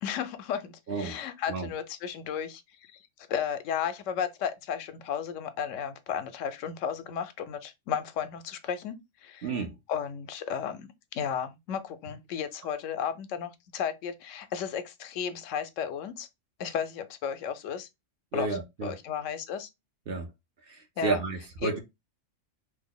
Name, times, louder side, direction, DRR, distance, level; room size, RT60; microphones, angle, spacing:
voice 1, 0.0-3.0 3.3-9.0 9.2-9.5 9.9-16.3 16.6-17.9 18.3-19.7 21.0-21.2 21.6-21.8, left 8 dB, 80° left, 0.9 m, -34 dB
voice 2, 9.4-9.7 18.3-18.9 20.1-20.3 20.7-21.8, right 4 dB, 55° right, 0.8 m, -31 dB
2.9 x 2.1 x 3.7 m
omnidirectional pair, 1.3 m